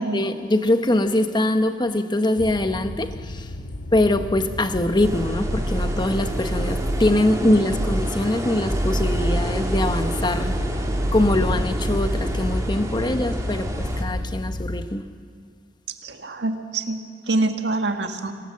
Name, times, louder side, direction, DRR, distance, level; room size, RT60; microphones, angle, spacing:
voice 1, 0.0-3.5 3.9-10.6 11.1-15.1, left 1 dB, 25° left, 1.1 m, -23 dB
sound 1, 2.4-14.9, left 1 dB, 65° left, 1.1 m, -32 dB
sound 2, 4.7-7.3 7.7-8.2 8.6-12.9, right 1 dB, 40° right, 0.8 m, -27 dB
sound 3, 5.0-14.0, right 1 dB, 20° right, 2.7 m, -30 dB
voice 2, 16.0-18.3, right 2 dB, 85° right, 1.7 m, -25 dB
25.5 x 18.0 x 7.6 m
head